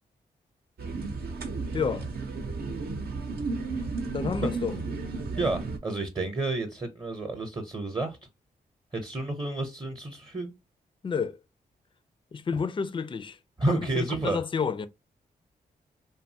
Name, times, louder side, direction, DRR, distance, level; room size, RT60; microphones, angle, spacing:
sound 1, 0.8-5.8, right 3 dB, 65° right, 0.7 m, -33 dB
voice 1, 1.7-2.1 4.1-4.8 11.0-11.4 12.3-13.4 13.7-14.9, left 6 dB, 30° left, 0.4 m, -30 dB
voice 2, 5.4-8.2 8.9-10.5 13.6-14.4, right 2 dB, 25° right, 0.7 m, -30 dB
2.7 x 2.2 x 2.7 m
supercardioid pair, 50°, 17 cm